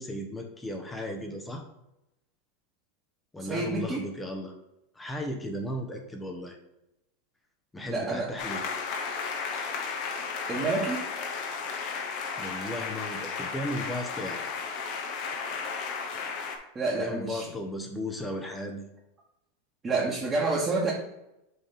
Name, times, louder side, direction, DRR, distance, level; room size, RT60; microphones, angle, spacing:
voice 1, 0.0-1.6 3.3-4.5 5.0-6.6 7.7-8.7 12.4-14.5 17.0-18.8, left 1 dB, 10° left, 3 dB, 0.8 m, -35 dB
voice 2, 3.4-4.0 7.9-8.3 10.5-11.1 16.7-17.5 19.8-20.9, right 3 dB, 20° right, -5 dB, 1.3 m, -28 dB
sound 1, 8.4-16.6, left 5 dB, 50° left, 1.0 m, -34 dB
5.6 x 3.5 x 5.7 m, 0.89 s
supercardioid pair, 135°, 0 cm